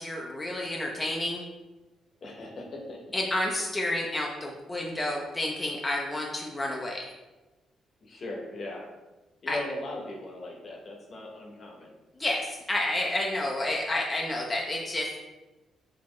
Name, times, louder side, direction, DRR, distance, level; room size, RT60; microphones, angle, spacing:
voice 1, 0.0-1.4 3.1-7.0 9.5-9.6 12.2-15.2, left 1 dB, 15° left, -2 dB, 0.5 m, -30 dB
voice 2, 2.2-3.0 8.0-8.9 9.4-11.9, left 1 dB, 50° left, 0 dB, 0.9 m, -38 dB
4.2 x 2.7 x 3.0 m, 1.1 s
cardioid pair, 90°, 0 cm